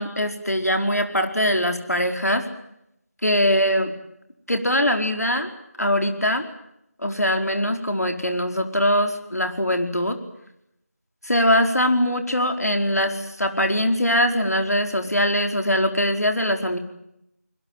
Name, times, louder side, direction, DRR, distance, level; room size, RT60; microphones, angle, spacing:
voice 1, 0.0-2.5 3.2-3.9 4.5-5.5 5.8-6.5 7.0-10.2 11.2-16.8, equal, 75° left, 6 dB, 4.7 m, -22 dB
24.0 x 22.0 x 9.4 m, 0.80 s
figure-of-eight pair, 175°, 9 cm